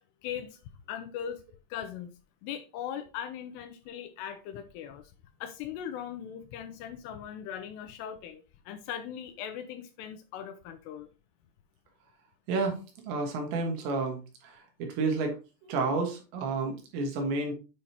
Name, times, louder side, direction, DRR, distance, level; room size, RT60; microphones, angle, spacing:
voice 1, 0.2-0.6 0.9-1.4 1.7-2.1 2.4-5.1 5.4-11.1, left 9 dB, 80° left, 2.5 m, -39 dB
voice 2, 12.5-12.8 13.1-15.4 15.6-17.5, right 3 dB, 75° right, 3.8 m, -30 dB
8.5 x 5.1 x 2.9 m
omnidirectional pair, 5.2 m